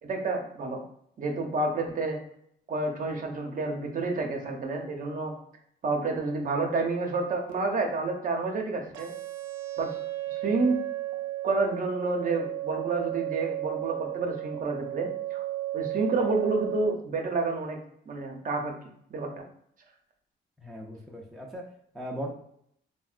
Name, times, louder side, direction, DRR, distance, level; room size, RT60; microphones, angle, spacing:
voice 1, 0.0-0.8 1.2-2.2 2.7-5.3 5.8-9.1 9.8-9.9 10.3-10.7 11.4-15.5 15.7-17.8 18.1-18.7 19.1-19.3, right 3 dB, 45° right, 1 dB, 0.7 m, -29 dB
sound 1, 8.9-16.9, right 16 dB, 80° right, 0.4 m, -34 dB
voice 2, 20.6-22.3, equal, ahead, -1 dB, 0.5 m, -38 dB
3.4 x 2.1 x 2.4 m, 0.69 s
cardioid pair, 90°, 20 cm